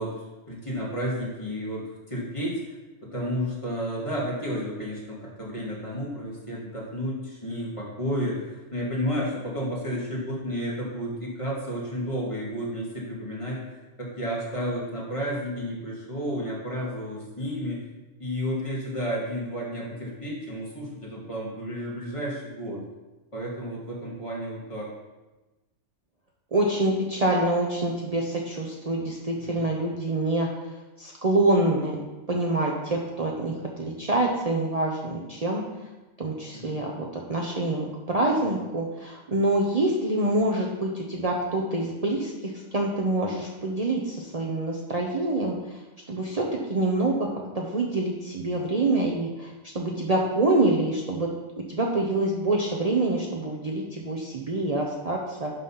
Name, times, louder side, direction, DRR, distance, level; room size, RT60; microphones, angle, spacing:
voice 1, 0.0-17.8 18.2-22.8 23.3-24.9 29.4-29.6 36.5-36.9, equal, 25° left, -5 dB, 2.3 m, -32 dB
voice 2, 26.5-30.5 31.0-32.0 32.3-33.5 33.8-35.6 36.2-45.5 46.1-47.3 47.5-49.5 49.7-51.3 51.7-55.5, right 2 dB, 35° right, -2 dB, 0.9 m, -26 dB
11.0 x 4.1 x 5.7 m, 1.1 s
omnidirectional pair, 1.2 m